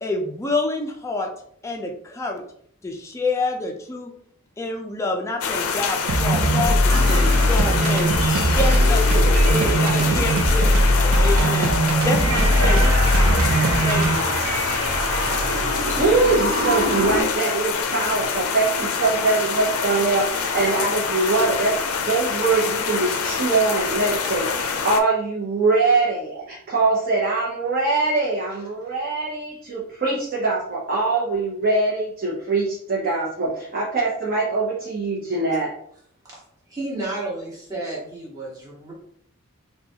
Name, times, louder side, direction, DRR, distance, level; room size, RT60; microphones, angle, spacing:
voice 1, 0.0-1.3 1.6-2.4 2.8-4.1 4.6-14.3, left 2 dB, 15° left, 1 dB, 0.3 m, -28 dB
sound 1, 5.4-25.0, left 5 dB, 85° left, 0.4 m, -26 dB
sound 2, 6.1-14.2, equal, 65° right, 0.4 m, -19 dB
sound 3, 6.9-17.2, right 1 dB, 85° right, 1.0 m, -27 dB
voice 2, 16.0-35.7, right 3 dB, 45° right, -6 dB, 0.8 m, -23 dB
voice 3, 36.3-38.9, right 2 dB, 15° right, -6 dB, 1.1 m, -32 dB
3.8 x 2.3 x 2.7 m, 0.65 s
head